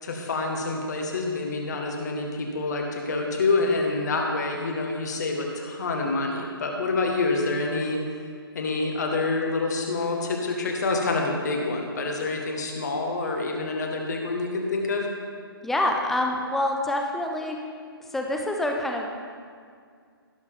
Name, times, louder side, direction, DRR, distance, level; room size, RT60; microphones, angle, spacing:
voice 1, 0.0-8.0 8.5-15.1, left 3 dB, 45° left, 1 dB, 1.7 m, -27 dB
voice 2, 15.6-17.6 18.1-19.1, left 1 dB, ahead, 1 dB, 0.5 m, -26 dB
17.5 x 6.5 x 3.6 m, 2.1 s
figure-of-eight pair, 140°, 13 cm